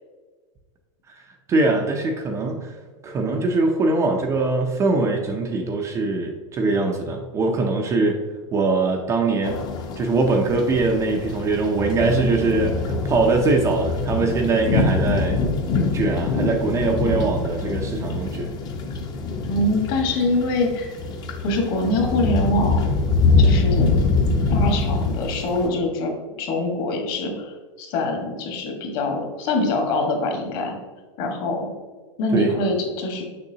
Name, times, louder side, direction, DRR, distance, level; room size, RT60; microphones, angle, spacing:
voice 1, 1.5-2.7 3.0-8.2 8.5-9.6 10.0-15.4 15.9-18.5 32.3-32.5, right 3 dB, 20° right, 2 dB, 0.5 m, -22 dB
sound 1, 9.4-25.7, left 3 dB, 25° left, 0.7 m, -24 dB
voice 2, 19.5-20.9 21.4-22.9 23.4-23.9 24.5-30.7 31.2-31.7 32.2-33.2, left 2 dB, 45° left, 2 dB, 1.4 m, -24 dB
6.7 x 5.7 x 2.8 m, 1.4 s
supercardioid pair, 155°, 16 cm